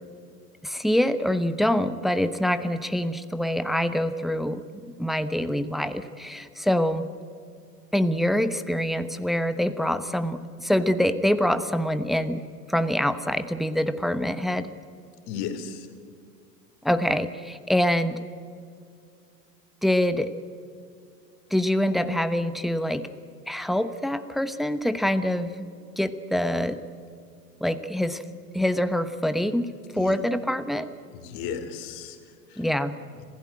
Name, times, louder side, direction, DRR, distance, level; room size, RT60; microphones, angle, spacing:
voice 1, 0.6-7.0 7.9-12.4 12.7-14.7 16.8-18.2 19.8-20.3 21.5-23.1 23.5-25.7 26.0-26.8 27.6-28.2 28.5-30.9 32.6-33.0, equal, ahead, 11 dB, 1.0 m, -25 dB
voice 2, 15.3-15.9 28.5-28.6 29.9-30.2 31.1-32.7 33.2-33.3, left 7 dB, 50° left, 8 dB, 3.2 m, -35 dB
26.5 x 16.0 x 8.7 m, 2.3 s
hypercardioid pair, 85°, 49 cm